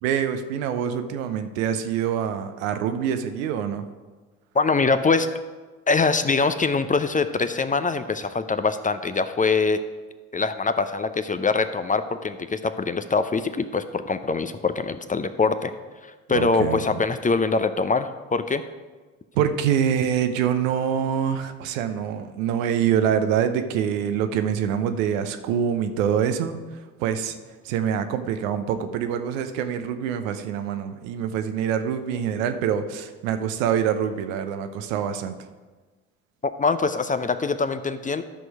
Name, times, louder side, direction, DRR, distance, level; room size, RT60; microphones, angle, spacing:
voice 1, 0.0-3.9 16.3-17.0 19.4-26.6 27.0-27.4 27.6-35.3, right 8 dB, 70° right, 9 dB, 0.8 m, -25 dB
voice 2, 4.5-5.3 5.9-9.8 10.3-15.7 16.0-18.6 36.4-38.2, left 4 dB, 20° left, 10 dB, 0.6 m, -23 dB
12.0 x 6.2 x 4.8 m, 1.3 s
figure-of-eight pair, 45°, 40 cm